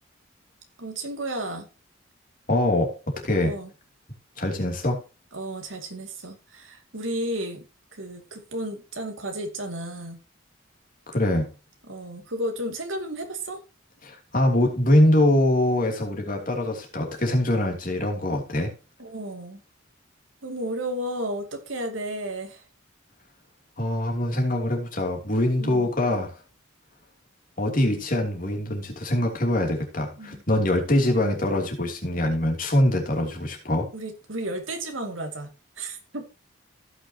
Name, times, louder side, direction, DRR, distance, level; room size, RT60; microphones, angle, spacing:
voice 1, 0.8-1.7 3.4-3.7 5.3-7.6 7.9-10.2 11.8-13.6 19.0-19.6 20.4-22.6 25.6-25.9 30.2-30.4 33.9-35.5 35.8-36.2, right 1 dB, 80° right, 5 dB, 2.4 m, -33 dB
voice 2, 2.5-3.5 4.4-5.0 11.1-11.5 14.0-18.7 23.8-26.3 27.6-33.9, left 1 dB, 45° left, 3 dB, 3.0 m, -23 dB
16.5 x 6.2 x 2.9 m, 0.32 s
head